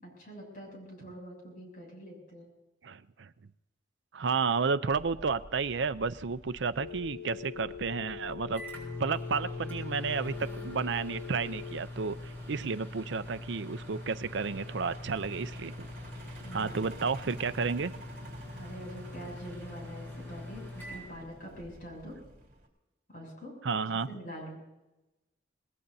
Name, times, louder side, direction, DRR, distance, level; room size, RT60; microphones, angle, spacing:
voice 1, 0.0-2.5 16.4-16.8 18.6-22.2 23.1-23.6 24.1-24.6, equal, 45° left, 0 dB, 7.3 m, -45 dB
voice 2, 2.8-3.3 4.1-8.6 9.0-15.9 16.5-17.9 23.6-24.1, right 5 dB, 75° right, 13 dB, 0.5 m, -32 dB
Truck, 4.9-22.7, right 1 dB, 45° right, 3.8 m, -52 dB
Telephone, 6.8-11.8, left 8 dB, 70° left, 0.5 m, -43 dB
Microwave oven, 7.9-21.9, left 1 dB, 10° left, 6.7 m, -43 dB
27.0 x 19.5 x 2.7 m, 0.98 s
head